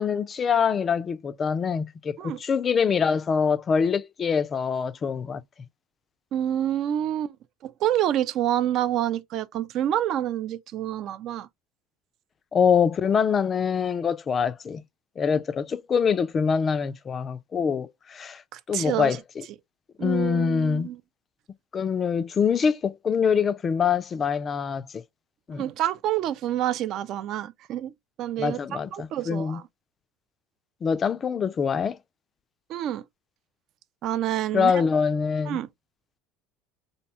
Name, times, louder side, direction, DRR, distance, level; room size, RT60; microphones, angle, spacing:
voice 1, 0.0-5.4 12.5-14.8 15.2-18.4 18.7-19.2 20.0-20.9 21.7-25.0 25.5-25.6 28.4-29.6 30.8-32.0 34.5-35.6, left 6 dB, 35° left, 0.3 m, -24 dB
voice 2, 6.3-7.4 7.6-11.5 18.5-19.2 20.0-21.0 25.5-27.9 28.2-29.6 32.7-33.0 34.0-34.8 35.5-35.7, right 11 dB, 55° right, 0.4 m, -28 dB
2.6 x 2.1 x 2.8 m
hypercardioid pair, 85°, 0 cm